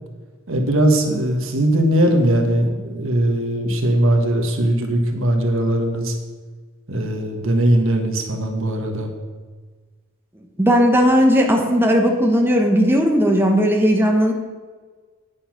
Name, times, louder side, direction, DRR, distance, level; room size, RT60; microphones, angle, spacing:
voice 1, 0.5-6.2 6.9-9.1, right 1 dB, 70° right, 4 dB, 1.4 m, -19 dB
voice 2, 10.6-14.3, equal, 10° right, 1 dB, 1.1 m, -16 dB
9.3 x 6.9 x 5.9 m, 1.4 s
head